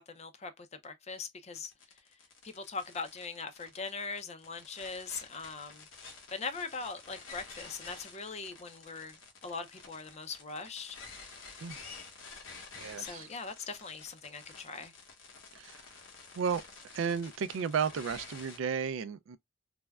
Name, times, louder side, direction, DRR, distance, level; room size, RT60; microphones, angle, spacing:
voice 1, 0.0-1.7 2.4-5.8 6.3-9.2 9.4-11.0 13.0-14.9, left 4 dB, 35° left, 0.5 m, -41 dB
sound 1, 1.5-18.6, left 4 dB, 85° left, 0.9 m, -50 dB
voice 2, 12.8-13.3 15.5-15.8 16.4-19.4, right 6 dB, 80° right, 0.4 m, -33 dB
3.3 x 2.1 x 2.2 m
head